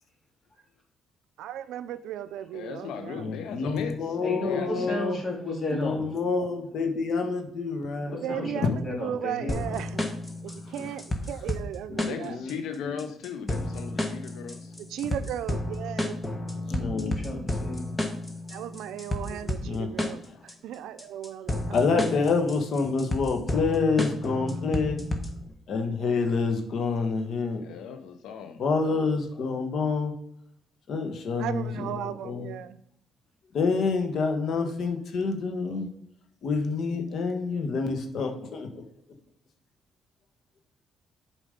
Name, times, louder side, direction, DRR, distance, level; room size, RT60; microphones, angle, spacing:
voice 1, 1.4-3.4 8.2-8.7 9.0-10.0 10.4-12.4 14.9-16.1 18.5-21.8 31.4-32.8, right 11 dB, 85° right, 0.5 m, -36 dB
voice 2, 2.5-5.0 12.0-14.7 27.6-28.6, left 7 dB, 85° left, 0.6 m, -38 dB
voice 3, 3.2-5.2 5.7-8.6 10.8-10.9 11.9-13.0 16.8-17.1 19.3-19.9 21.7-25.0 25.7-27.6 28.5-30.1 30.9-32.5 33.5-35.9 36.4-38.8, left 4 dB, 65° left, 1.4 m, -28 dB
voice 4, 4.2-6.0 8.0-9.8 16.7-17.9, left 2 dB, 35° left, 3.2 m, -33 dB
sound 1, 9.5-25.5, left 1 dB, 20° left, 1.4 m, -32 dB
7.4 x 5.0 x 5.2 m
cardioid pair, 90°, 0 cm